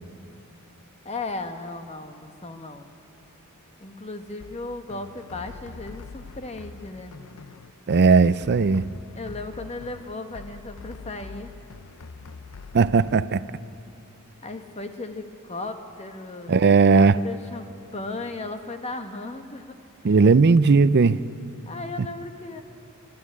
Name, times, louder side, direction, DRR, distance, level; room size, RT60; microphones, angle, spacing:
voice 1, 1.0-2.9 3.8-7.1 9.2-11.5 14.4-16.5 16.9-19.7 21.7-22.6, left 2 dB, 30° left, 1.1 m, -36 dB
sound 1, 4.4-13.1, left 4 dB, 75° left, 0.6 m, -44 dB
voice 2, 7.9-8.9 12.7-13.4 16.5-17.2 20.0-21.2 22.0-22.1, right 4 dB, 50° right, 0.5 m, -17 dB
25.0 x 11.5 x 9.7 m
head